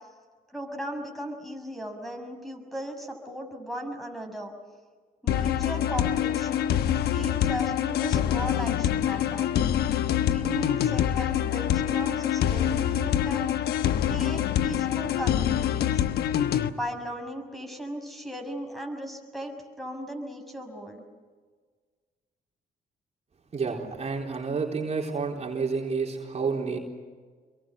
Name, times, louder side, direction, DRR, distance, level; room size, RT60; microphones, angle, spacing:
voice 1, 0.5-4.5 5.2-6.8 7.1-9.5 10.1-13.5 14.0-16.0 16.7-21.0, equal, ahead, 4 dB, 6.2 m, -37 dB
sound 1, 5.3-16.7, left 10 dB, 80° left, 1.2 m, -25 dB
voice 2, 23.5-26.8, right 4 dB, 45° right, 0 dB, 4.1 m, -29 dB
26.0 x 23.0 x 7.9 m, 1.5 s
cardioid pair, 75°, 16 cm